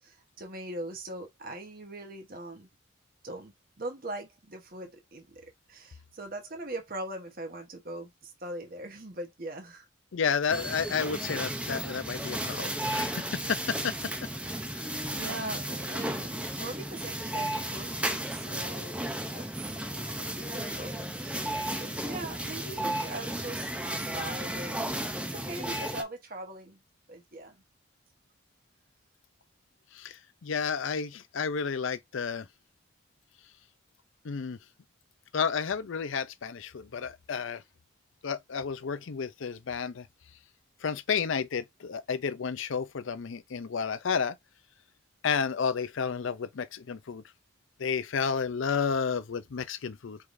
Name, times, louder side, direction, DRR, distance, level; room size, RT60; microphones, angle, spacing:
voice 1, 0.0-2.7 3.2-9.9 15.1-19.0 19.3-19.7 19.9-25.0 25.3-26.8 27.1-27.6, right 2 dB, 45° right, 1.0 m, -41 dB
voice 2, 10.1-14.1 14.7-15.0 29.9-32.5 34.2-34.6 35.3-37.6 38.2-40.1 40.8-44.4 45.2-47.2 47.8-50.2, left 6 dB, 70° left, 0.5 m, -31 dB
sound 1, 10.5-26.0, right 1 dB, 5° right, 0.5 m, -34 dB
4.8 x 3.5 x 2.6 m
head